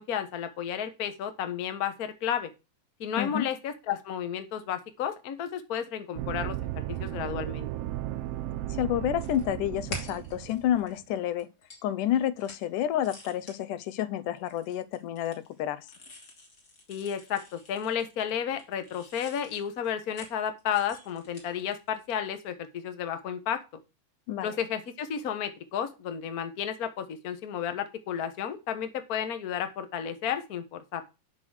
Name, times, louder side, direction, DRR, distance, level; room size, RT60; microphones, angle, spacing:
voice 1, 0.0-2.5 3.0-7.7 16.9-23.6 24.4-31.0, left 8 dB, 45° left, 1.2 m, -32 dB
sound 1, 6.1-11.0, right 14 dB, 85° right, 1.3 m, -35 dB
voice 2, 8.7-11.5 11.8-15.9 24.3-24.6, left 11 dB, 90° left, 2.4 m, -29 dB
sound 2, 9.2-11.1 11.4-11.9 12.1-12.7 12.9-13.6 14.4-18.3 18.6-22.0, left 1 dB, 30° left, 2.9 m, -46 dB
11.0 x 6.1 x 6.5 m
omnidirectional pair, 3.6 m